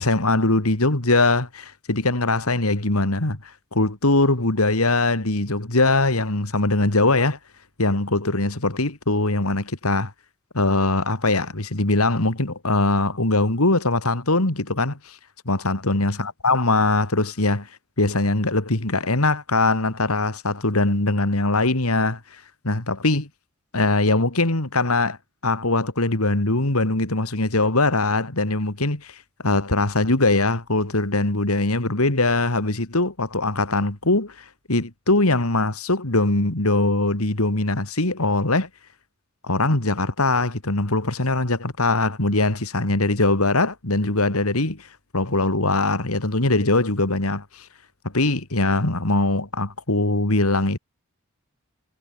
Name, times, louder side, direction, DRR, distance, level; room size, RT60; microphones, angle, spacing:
voice 1, 0.0-7.4 7.8-10.1 10.5-15.2 15.4-17.7 18.0-22.2 22.6-23.3 23.7-25.2 25.4-38.7 39.5-44.9 45.1-47.7 48.1-50.8, left 2 dB, 90° left, 3.0 m, -21 dB
head